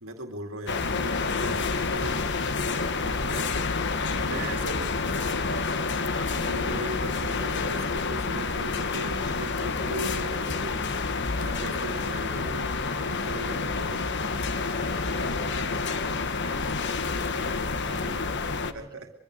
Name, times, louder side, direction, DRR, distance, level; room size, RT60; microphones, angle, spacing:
voice 1, 0.0-2.2 3.2-3.7 4.3-4.9 6.1-10.8 11.4-14.3 17.8-18.3 18.7-19.1, right 1 dB, 75° right, 4 dB, 2.3 m, -38 dB
sound 1, 0.7-18.7, left 4 dB, 60° left, 1.3 m, -28 dB
voice 2, 3.3-4.6 4.9-5.0 14.6-19.0, right 2 dB, 20° right, 0 dB, 5.4 m, -49 dB
24.0 x 23.5 x 6.5 m, 0.72 s
head